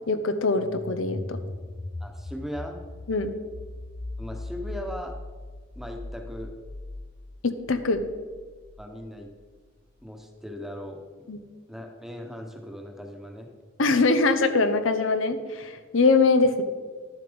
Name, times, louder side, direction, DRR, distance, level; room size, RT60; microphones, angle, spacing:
voice 1, 0.1-1.4 3.1-3.3 7.4-8.0 11.3-11.4 13.8-16.6, left 3 dB, 70° left, 9 dB, 0.8 m, -23 dB
sound 1, 0.5-9.2, left 2 dB, 20° left, 0.4 m, -39 dB
voice 2, 2.0-2.8 4.2-5.1 5.7-6.5 8.8-9.3 10.0-11.3 11.7-13.5, equal, ahead, 3 dB, 1.1 m, -38 dB
12.5 x 7.2 x 5.2 m, 1.5 s
head